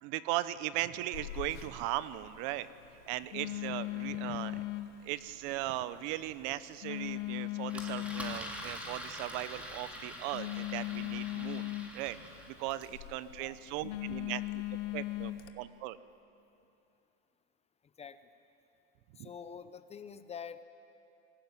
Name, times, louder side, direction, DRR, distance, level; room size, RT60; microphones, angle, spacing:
voice 1, 0.0-2.7 3.1-4.7 5.0-11.7 11.9-12.2 12.5-14.6 14.9-16.0 19.2-19.3, right 15 dB, 55° right, 16 dB, 0.8 m, -38 dB
Telephone, 1.1-15.5, left 16 dB, 85° left, 1.4 m, -40 dB
Engine, 7.7-13.0, equal, 5° right, 3.0 m, -45 dB
voice 2, 17.8-18.2 19.2-20.6, left 7 dB, 20° left, 12 dB, 0.6 m, -46 dB
21.0 x 18.0 x 9.1 m, 2.8 s
supercardioid pair, 135°, 34 cm